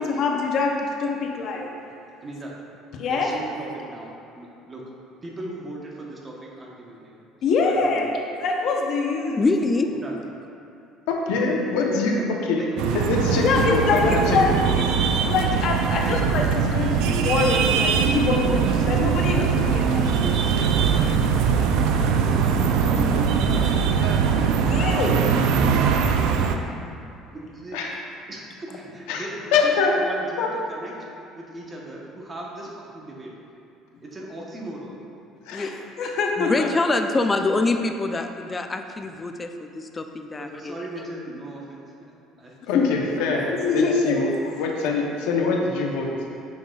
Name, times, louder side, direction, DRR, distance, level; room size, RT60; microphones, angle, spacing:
voice 1, 0.0-1.7 2.9-3.3 7.4-9.4 13.4-14.5 14.8-14.9 15.3-20.0 24.7-25.3 35.5-35.7 36.0-36.7 42.7-42.9 43.5-44.2, left 4 dB, 55° left, 1 dB, 0.7 m, -24 dB
voice 2, 2.2-2.5 3.1-4.8 5.2-7.2 7.5-8.1 10.0-10.3 12.1-12.8 13.3-14.0 14.6-14.7 15.4-15.6 15.9-16.2 18.5-18.7 19.2-24.9 27.3-27.8 28.3-30.9 31.3-33.3 34.0-35.0 40.4-42.5 42.9-43.9, right 2 dB, 25° right, -2 dB, 1.0 m, -38 dB
voice 3, 9.4-9.9 35.5-35.8 36.4-40.8, left 3 dB, 20° left, 6 dB, 0.4 m, -25 dB
voice 4, 11.1-12.2 12.5-12.6 12.9-14.7 27.7-27.9 29.1-29.9 30.4-30.5 35.4-35.6 42.7-46.1, left 4 dB, 90° left, 0 dB, 0.8 m, -24 dB
sound 1, 12.8-26.6, right 6 dB, 75° right, 0.4 m, -21 dB
7.1 x 6.3 x 2.4 m, 2.6 s
cardioid pair, 130°, 0 cm